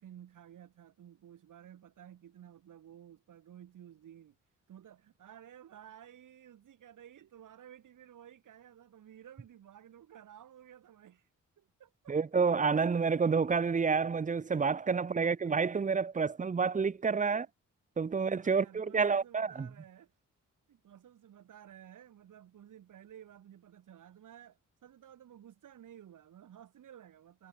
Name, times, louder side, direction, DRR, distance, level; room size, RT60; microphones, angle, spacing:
voice 1, 0.0-4.4 4.7-11.3 11.6-12.2 15.0-15.3 16.1-16.2 17.2-17.5 18.0-20.1 20.7-27.5, right 10 dB, 90° right, 3.7 m, -54 dB
voice 2, 12.1-17.5 18.0-19.7, right 5 dB, 25° right, 0.6 m, -29 dB
cardioid pair, 100°, 31 cm